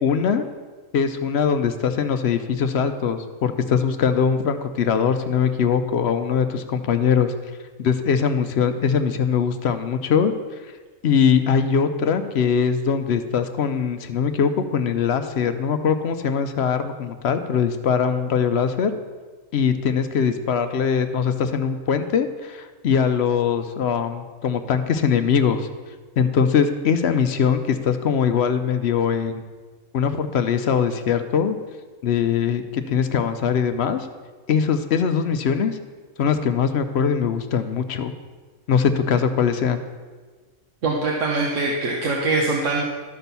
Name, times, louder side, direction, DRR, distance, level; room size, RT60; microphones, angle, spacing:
voice 1, 0.0-0.4 0.9-7.3 7.8-10.3 11.0-18.9 19.5-25.7 26.2-29.4 29.9-31.6 32.0-34.1 34.5-35.8 36.2-38.1 38.7-39.8, left 7 dB, 60° left, 9 dB, 0.8 m, -21 dB
voice 2, 40.8-42.8, right 3 dB, 65° right, -1 dB, 1.3 m, -23 dB
12.0 x 4.3 x 6.7 m, 1.4 s
omnidirectional pair, 1.4 m